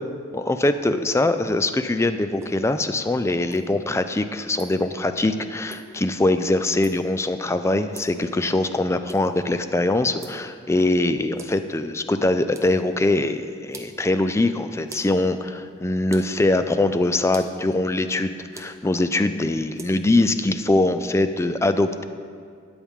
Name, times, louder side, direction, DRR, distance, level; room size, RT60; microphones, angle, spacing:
voice 1, 0.3-22.0, left 2 dB, 15° left, 10 dB, 0.3 m, -22 dB
sound 1, 2.3-19.9, right 2 dB, 15° right, 0.7 m, -46 dB
13.0 x 8.8 x 3.6 m, 2.2 s
head